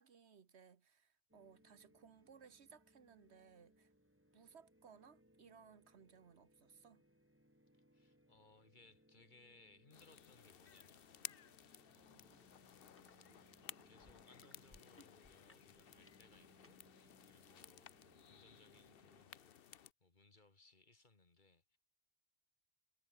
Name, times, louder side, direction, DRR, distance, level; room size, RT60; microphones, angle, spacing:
voice 1, 0.0-3.9 4.3-7.0, right 6 dB, 85° right, 1.6 m, -63 dB
sound 1, 1.3-19.2, equal, 10° right, 6.3 m, -71 dB
voice 2, 7.7-12.6 13.1-21.8, left 3 dB, 45° left, 2.3 m, -68 dB
sound 2, 9.9-19.9, left 9 dB, 60° left, 1.0 m, -57 dB
sound 3, 12.3-12.4 12.8-13.1 13.7-16.8 17.5-17.6, left 1 dB, 10° left, 1.4 m, -67 dB
omnidirectional pair, 1.1 m